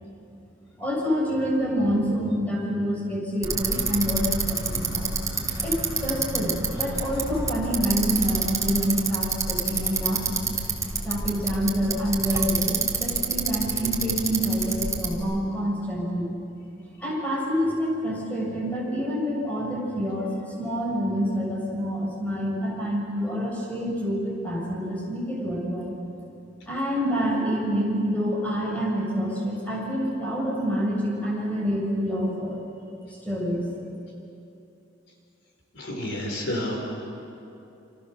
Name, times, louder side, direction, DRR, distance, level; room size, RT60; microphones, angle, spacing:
voice 1, 0.8-5.1 5.6-10.5 11.0-16.3 17.0-20.3 20.6-26.0 26.7-32.6 33.2-33.6, equal, 10° left, -3 dB, 7.0 m, -27 dB
Bicycle, 3.4-15.2, right 4 dB, 15° right, 3.3 m, -28 dB
voice 2, 35.7-37.0, left 1 dB, 70° left, 0 dB, 5.3 m, -30 dB
29.0 x 28.5 x 7.0 m, 2.8 s
head